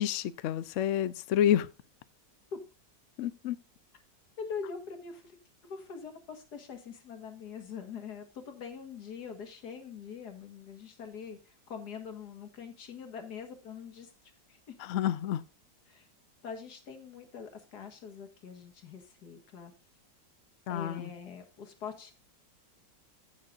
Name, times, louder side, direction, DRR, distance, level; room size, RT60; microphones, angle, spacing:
voice 1, 0.0-1.7 3.2-3.6 14.8-15.4 20.7-21.1, left 10 dB, 80° left, 0.6 m, -29 dB
voice 2, 4.4-5.4 5.6-14.1 14.5-14.8 15.9-16.1 16.4-19.7 20.7-22.1, left 6 dB, 60° left, 2.1 m, -43 dB
15.0 x 6.7 x 2.5 m
omnidirectional pair, 2.0 m